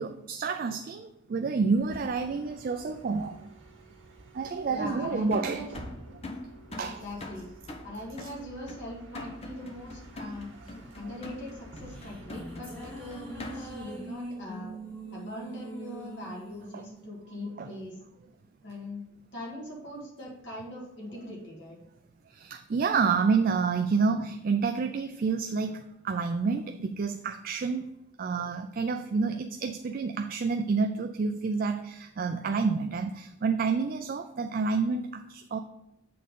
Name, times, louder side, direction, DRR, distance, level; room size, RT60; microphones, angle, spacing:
voice 1, 0.0-3.4 4.3-5.7 6.8-7.0 8.2-8.3 16.7-16.8 17.6-17.7 22.3-27.8 28.2-35.6, right 4 dB, 45° right, 7 dB, 0.3 m, -29 dB
Bus, 1.7-14.1, right 1 dB, 80° right, 1.7 m, -50 dB
voice 2, 4.7-5.7 6.8-7.5 7.8-10.5 11.0-14.7 15.1-18.0 18.6-19.0 19.3-21.8, left 1 dB, 60° left, -3 dB, 1.9 m, -41 dB
sound 1, 5.3-13.9, left 2 dB, 30° left, 0.8 m, -43 dB
sound 2, 11.9-18.2, right 2 dB, 5° left, 1.4 m, -43 dB
7.7 x 3.7 x 5.3 m, 0.89 s
head